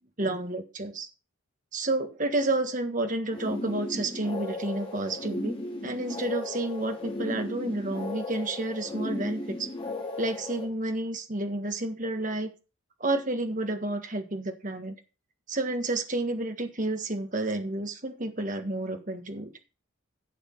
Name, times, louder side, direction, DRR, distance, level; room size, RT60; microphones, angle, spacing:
voice 1, 0.2-1.1 1.7-9.7 10.2-12.5 13.0-14.9 15.5-19.5, right 2 dB, 35° right, 6 dB, 1.6 m, -30 dB
sound 1, 3.3-10.6, left 2 dB, 25° left, 3.2 m, -36 dB
11.0 x 7.2 x 5.6 m, 0.32 s
head